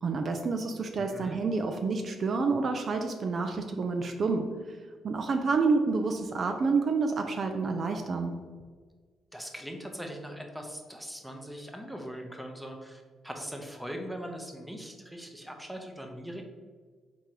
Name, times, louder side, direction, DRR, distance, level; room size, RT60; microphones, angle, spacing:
voice 1, 0.0-4.5 5.0-8.3, right 4 dB, 50° right, 5 dB, 0.4 m, -28 dB
voice 2, 1.0-1.4 9.3-16.4, equal, ahead, 2 dB, 0.7 m, -41 dB
3.7 x 2.9 x 4.5 m, 1.5 s
cardioid pair, 90°, 0 cm